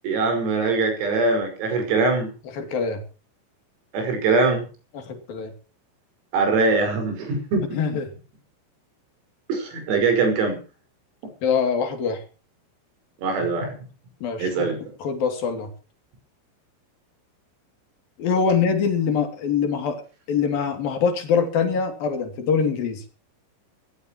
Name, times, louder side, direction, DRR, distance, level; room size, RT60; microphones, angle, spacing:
voice 1, 0.0-2.3 3.9-4.6 6.3-7.8 9.5-10.6 13.2-13.8 14.4-14.8, right 3 dB, 85° right, 5 dB, 8.4 m, -22 dB
voice 2, 2.6-3.0 4.9-5.5 7.7-8.1 11.4-12.2 14.2-14.7 15.0-15.7 18.2-20.0 20.3-23.0, left 6 dB, 50° left, 7 dB, 4.0 m, -24 dB
22.0 x 17.0 x 3.1 m, 0.36 s
omnidirectional pair, 6.0 m